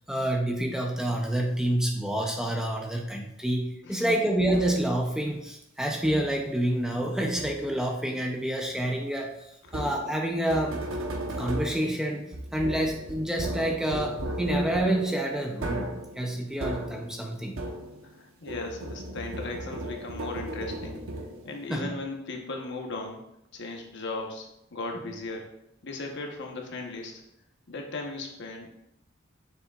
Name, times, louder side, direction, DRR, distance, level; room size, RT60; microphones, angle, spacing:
voice 1, 0.1-9.3 9.7-10.8 11.4-15.9 16.2-17.6 21.7-21.9, right 1 dB, 5° right, 1 dB, 0.6 m, -28 dB
voice 2, 3.8-4.2 9.6-9.8 18.0-21.0 21.4-23.3 23.5-25.5 25.8-27.2 27.7-28.7, left 2 dB, 60° left, 2 dB, 1.1 m, -37 dB
sound 1, 4.5-5.0 6.0-6.5 7.4-7.9 9.7-18.2 18.5-21.6, right 1 dB, 75° right, 1.0 m, -36 dB
7.3 x 6.3 x 2.4 m, 0.81 s
head